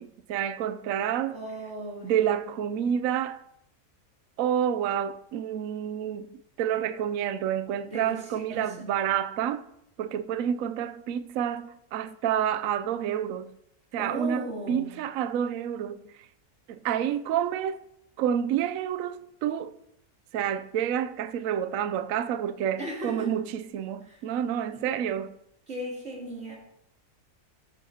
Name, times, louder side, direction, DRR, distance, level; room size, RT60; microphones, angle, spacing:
voice 1, 0.0-1.4 2.0-3.4 4.4-6.3 6.6-9.7 10.0-13.5 13.9-16.0 16.7-17.8 18.2-19.7 20.3-25.3, right 9 dB, 70° right, 0.9 m, -29 dB
voice 2, 1.3-2.1 7.8-8.9 14.0-15.0 22.8-23.3 24.0-24.2 24.7-24.8 25.7-26.6, right 1 dB, 45° right, 3.3 m, -37 dB
13.0 x 9.7 x 2.8 m
omnidirectional pair, 1.7 m